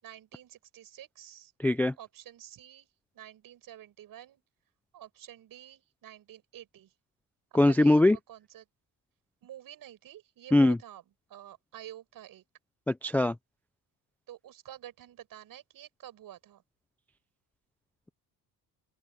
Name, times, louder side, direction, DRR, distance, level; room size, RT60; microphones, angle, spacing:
voice 1, 0.0-1.5 2.0-2.9 3.1-4.4 4.9-6.9 7.5-8.6 9.4-12.4 14.3-16.6, right 12 dB, 55° right, 7.9 m, -49 dB
voice 2, 1.6-1.9 7.5-8.2 10.5-10.8 12.9-13.4, left 2 dB, 5° left, 0.3 m, -21 dB
open air
cardioid pair, 155°, 41 cm